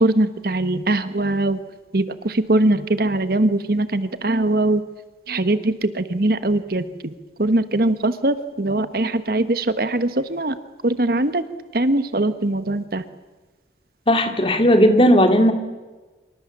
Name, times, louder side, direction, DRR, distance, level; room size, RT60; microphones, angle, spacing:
voice 1, 0.0-1.6 1.9-4.8 5.3-7.1 7.4-10.5 10.8-11.4 11.7-13.0, right 2 dB, 55° right, 12 dB, 1.3 m, -21 dB
voice 2, 14.1-15.5, equal, 30° left, 6 dB, 2.5 m, -15 dB
26.5 x 24.0 x 7.4 m, 1.2 s
head